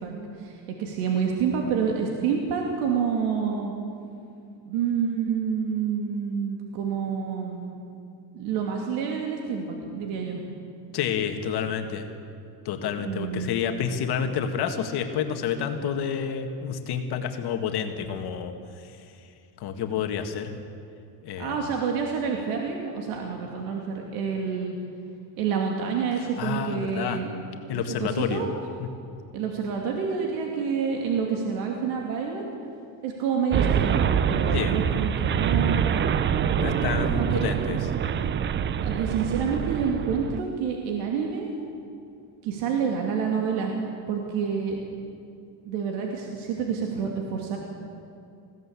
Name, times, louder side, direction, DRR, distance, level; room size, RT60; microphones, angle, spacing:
voice 1, 0.0-3.7 4.6-7.8 8.3-10.4 13.0-13.5 21.4-24.8 25.4-27.4 28.0-28.5 29.3-32.4 33.0-35.9 37.2-37.4 38.8-41.5 42.4-43.7 44.1-44.8 45.6-47.6, right 6 dB, 85° right, 1 dB, 2.7 m, -28 dB
voice 2, 10.9-12.1 12.7-18.9 19.6-20.5 21.2-21.6 26.4-27.2 27.7-28.4 28.8-28.9 34.5-34.8 36.6-37.8 38.1-38.3, left 7 dB, 50° left, 5 dB, 1.9 m, -29 dB
sound 1, 33.5-40.4, right 8 dB, 25° right, 0.4 m, -25 dB
20.0 x 16.5 x 8.4 m, 2.5 s
cardioid pair, 135°, 49 cm